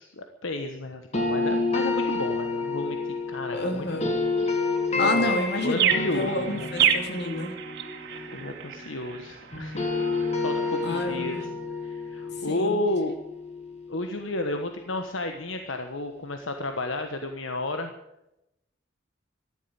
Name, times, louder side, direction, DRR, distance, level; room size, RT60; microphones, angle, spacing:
voice 1, 0.0-4.2 4.9-5.3 5.6-6.7 8.3-10.1 10.4-11.5 11.8-13.1 13.9-17.9, left 2 dB, 80° left, 6 dB, 1.3 m, -32 dB
sound 1, 1.1-9.2 9.5-14.5, left 3 dB, 35° left, 2.3 m, -30 dB
voice 2, 3.5-4.1 5.0-7.5 10.8-11.4 12.5-12.8, left 1 dB, 60° left, 4 dB, 2.9 m, -29 dB
sound 2, 5.2-11.5, right 8 dB, 60° right, 2.4 m, -30 dB
14.0 x 11.5 x 8.8 m, 0.89 s
head